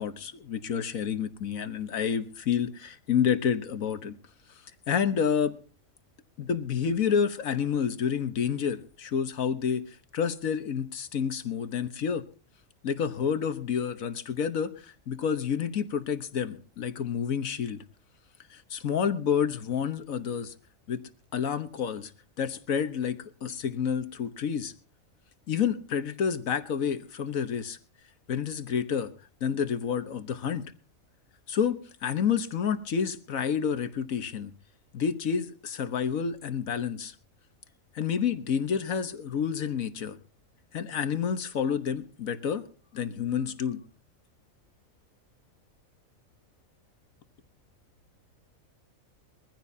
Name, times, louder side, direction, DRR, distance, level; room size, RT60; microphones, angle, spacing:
voice 1, 0.0-4.2 4.9-5.6 6.4-12.2 12.8-17.8 18.5-20.5 20.9-21.0 21.3-22.1 22.4-24.7 25.5-27.8 28.3-29.1 29.4-30.7 31.5-34.5 34.9-37.2 38.0-40.2 40.7-42.6 42.9-43.8, left 7 dB, 80° left, 1.6 m, -29 dB
22.5 x 15.0 x 2.8 m
omnidirectional pair, 1.4 m